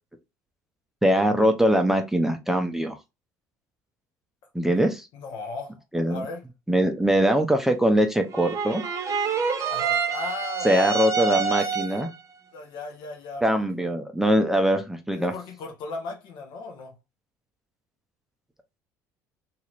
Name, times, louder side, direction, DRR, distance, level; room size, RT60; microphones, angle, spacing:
voice 1, 1.0-3.0 4.5-5.1 5.9-6.2 6.7-8.8 10.6-12.1 13.4-15.3, equal, 5° right, 0.6 m, -22 dB
voice 2, 5.1-5.8 6.0-6.4 9.7-10.7 12.5-13.6 15.1-17.0, left 3 dB, 60° left, 1.1 m, -37 dB
sound 1, 8.3-12.2, right 6 dB, 35° right, 0.8 m, -27 dB
2.9 x 2.9 x 2.4 m
hypercardioid pair, 65°, 9 cm